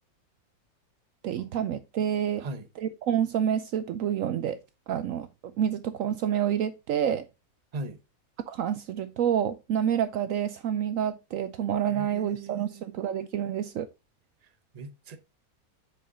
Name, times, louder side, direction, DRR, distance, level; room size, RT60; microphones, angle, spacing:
voice 1, 1.2-2.5 3.0-4.6 4.9-7.2 8.5-13.9, right 9 dB, 70° right, 0.9 m, -28 dB
voice 2, 2.4-2.7 7.7-8.0 11.9-12.9 14.4-14.5 14.7-15.2, right 2 dB, 35° right, 0.8 m, -39 dB
7.8 x 5.1 x 3.9 m
omnidirectional pair, 1.6 m